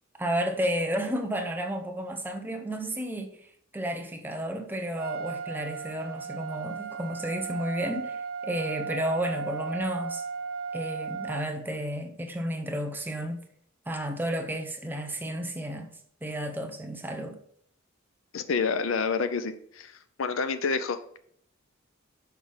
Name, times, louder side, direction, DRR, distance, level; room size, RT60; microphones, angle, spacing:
voice 1, 0.2-3.3 3.7-10.2 10.7-13.4 13.9-15.9 16.2-17.4, equal, 10° right, 0.7 m, -32 dB
Trumpet, 4.9-11.5, right 5 dB, 85° right, 0.7 m, -36 dB
voice 2, 18.3-21.2, left 5 dB, 80° left, 0.6 m, -29 dB
5.9 x 4.9 x 5.4 m
head